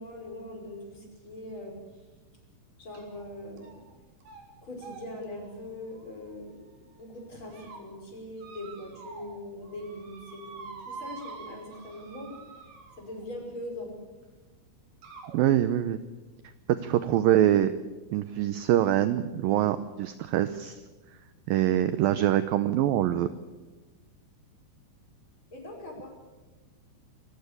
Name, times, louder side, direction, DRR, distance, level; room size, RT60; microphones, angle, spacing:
voice 1, 0.0-1.8 2.8-3.8 4.6-12.4 13.0-13.9 25.5-26.1, left 1 dB, 25° left, 1 dB, 6.2 m, -41 dB
sound 1, 2.9-3.2 3.6-3.9 4.2-4.4 4.8-6.7 7.2-7.8 8.4-9.4 9.6-13.2 14.2-14.3 15.0-15.4, right 5 dB, 65° right, 5.3 m, -47 dB
voice 2, 15.3-16.0 16.7-17.7 18.1-20.8 21.5-23.3, right 12 dB, 80° right, 12 dB, 2.1 m, -24 dB
26.5 x 15.0 x 8.3 m, 1.2 s
omnidirectional pair, 5.0 m